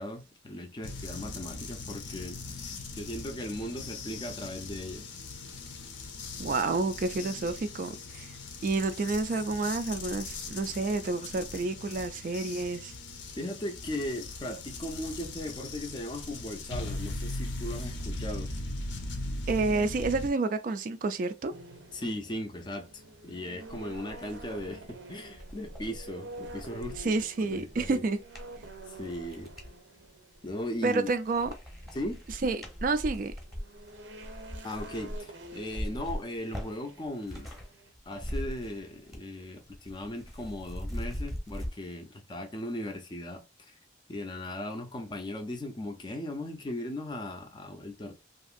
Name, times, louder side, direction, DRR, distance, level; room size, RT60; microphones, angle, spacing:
voice 1, 0.0-5.1 13.4-18.5 21.9-27.1 27.4-28.0 28.9-29.5 30.4-31.1 31.9-32.2 34.6-37.5 38.1-43.7 44.1-48.1, left 1 dB, 25° left, 0.4 m, -38 dB
sound 1, 0.8-20.3, left 2 dB, 85° left, 0.6 m, -39 dB
voice 2, 6.4-8.4 8.6-12.9 19.5-21.5 27.0-28.2 30.8-31.5 32.3-33.3, right 3 dB, 45° right, 0.3 m, -29 dB
sound 2, 21.5-37.9, right 2 dB, 80° right, 0.6 m, -49 dB
sound 3, 23.1-23.2 23.6-29.7 30.3-30.9 31.2-37.7 37.9-39.3 39.6-41.7, equal, ahead, 0.8 m, -41 dB
2.8 x 2.5 x 2.4 m
head